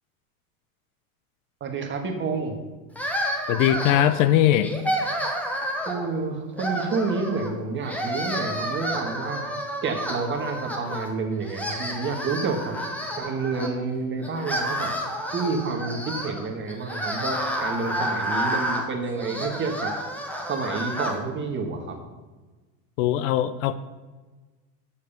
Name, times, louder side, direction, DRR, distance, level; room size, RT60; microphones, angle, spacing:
voice 1, 1.6-2.6 5.9-9.4 9.8-12.7 13.2-14.9 15.3-19.9 20.5-22.0, right 4 dB, 25° right, 3 dB, 1.5 m, -29 dB
sound 1, 2.9-4.2 4.6-6.1 6.5-7.5 7.8-11.1 11.4-13.7 14.2-21.2, equal, 5° left, 1.1 m, -30 dB
voice 2, 3.5-4.7 23.0-23.8, left 11 dB, 60° left, 13 dB, 0.6 m, -20 dB
7.3 x 6.5 x 6.7 m, 1.3 s
supercardioid pair, 125°, 43 cm